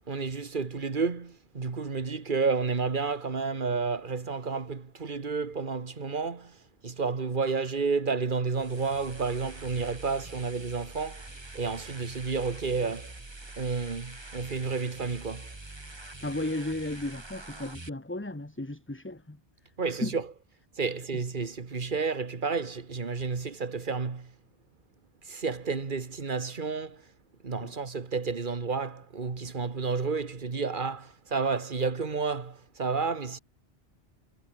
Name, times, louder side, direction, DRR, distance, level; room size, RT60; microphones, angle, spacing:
voice 1, 0.1-13.1 13.6-15.5 19.8-20.3 20.8-24.3 25.2-27.1 27.4-33.4, right 4 dB, 50° right, 1.7 m, -31 dB
sound 1, 8.5-17.9, right 2 dB, 25° right, 1.8 m, -45 dB
voice 2, 16.2-19.4 20.0-20.1 27.6-27.7, left 1 dB, 10° left, 1.3 m, -34 dB
omnidirectional pair, 1.1 m